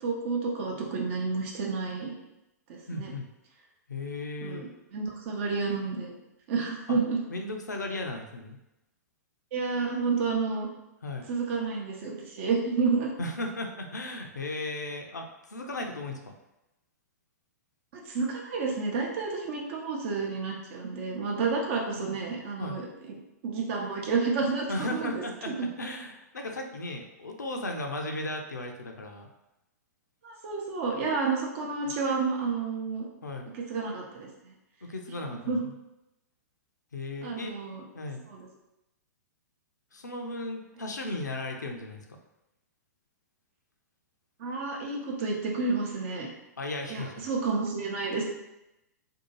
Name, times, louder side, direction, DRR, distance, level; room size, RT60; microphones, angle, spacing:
voice 1, 0.0-2.1 2.7-3.1 4.4-6.1 6.5-7.2 9.5-10.7 11.3-13.1 17.9-23.2 23.4-25.7 30.2-33.1 33.5-34.3 35.3-35.6 37.2-37.8 38.3-38.4 44.4-46.3 46.9-48.2, right 4 dB, 50° right, -1 dB, 0.7 m, -30 dB
voice 2, 2.9-3.2 3.9-4.7 6.9-7.0 7.3-8.6 11.0-11.3 13.2-16.3 21.9-22.2 22.6-22.8 24.7-29.3 33.2-33.5 34.8-35.7 36.9-37.5 37.9-38.2 39.9-42.1 46.6-47.2, left 2 dB, 85° left, 3 dB, 0.5 m, -36 dB
2.7 x 2.3 x 2.9 m, 0.92 s
figure-of-eight pair, 110°, 9 cm